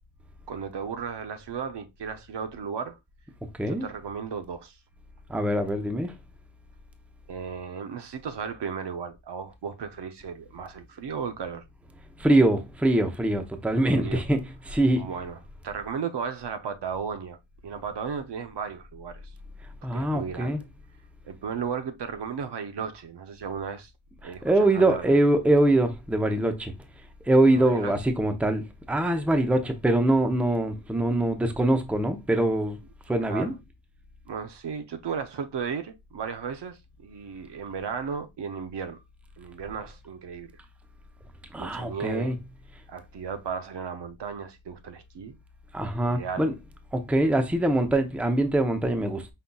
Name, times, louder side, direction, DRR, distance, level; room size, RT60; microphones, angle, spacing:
voice 1, 0.5-3.0 3.7-4.8 7.3-11.6 14.0-14.2 15.0-15.4 15.6-17.4 17.6-19.2 19.9-20.6 21.2-23.9 24.2-25.2 27.5-27.9 33.3-33.5 34.3-39.0 39.4-40.5 41.6-42.3 42.9-45.4 46.1-46.5, right 6 dB, 60° right, 0.7 m, -35 dB
voice 2, 5.3-6.1 12.2-15.1 19.8-20.6 24.2-26.7 27.2-32.8 33.1-33.5 41.5-42.4 45.7-46.5 46.9-49.3, right 1 dB, 5° right, 0.6 m, -23 dB
5.5 x 3.7 x 2.2 m
wide cardioid pair, 125°, 48 cm